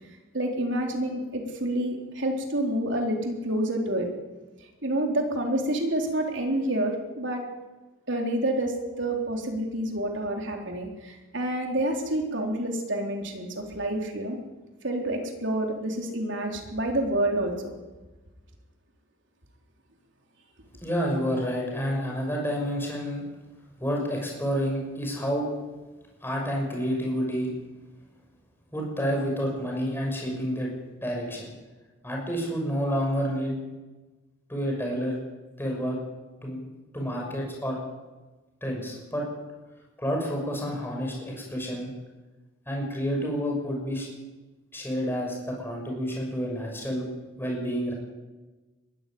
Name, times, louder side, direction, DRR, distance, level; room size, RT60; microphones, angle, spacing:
voice 1, 0.3-4.1 4.8-7.4 8.1-14.4 14.8-17.7, right 1 dB, 60° right, 2 dB, 3.9 m, -28 dB
voice 2, 20.8-23.2 23.8-25.5 26.2-27.5 28.7-31.5 32.0-33.5 34.5-35.2 35.6-36.0 36.4-36.6 36.9-37.8 38.6-39.2 40.0-41.9 42.7-44.1 44.7-47.1 47.4-47.9, equal, 10° left, 0 dB, 6.4 m, -29 dB
22.0 x 14.0 x 9.5 m, 1.2 s
head